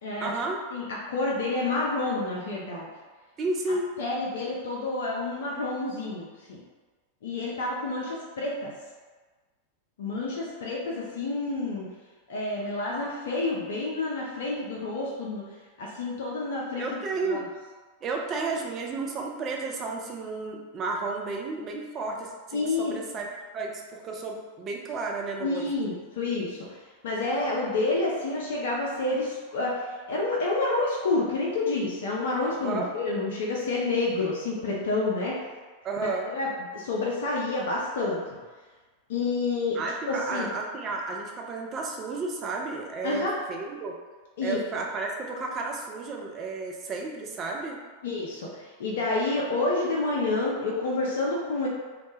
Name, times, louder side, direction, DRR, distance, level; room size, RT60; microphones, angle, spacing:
voice 1, 0.2-0.6 3.4-3.9 16.8-17.5 18.0-23.2 23.5-25.7 32.6-32.9 35.8-36.3 39.7-44.0 44.4-47.8, right 3 dB, 30° right, 0 dB, 0.4 m, -32 dB
voice 2, 0.7-2.9 4.0-6.6 7.2-8.7 10.0-11.9 12.3-15.4 15.8-16.9 17.3-17.4 22.5-22.9 25.4-26.6 27.0-35.4 36.3-38.2 39.1-39.8 40.1-40.5 43.0-43.3 44.4-44.6 48.0-51.7, left 3 dB, 60° left, -4 dB, 0.4 m, -29 dB
2.1 x 2.0 x 3.0 m, 1.4 s
figure-of-eight pair, 90°, 0 cm